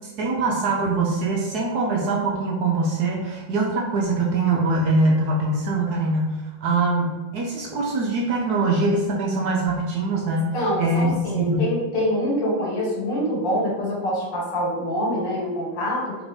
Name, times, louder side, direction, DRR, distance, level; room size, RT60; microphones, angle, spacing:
voice 1, 0.0-11.7, right 2 dB, 70° right, -1 dB, 1.0 m, -23 dB
voice 2, 10.5-16.2, equal, 70° left, -4 dB, 2.1 m, -25 dB
4.0 x 3.4 x 3.5 m, 1.2 s
omnidirectional pair, 2.0 m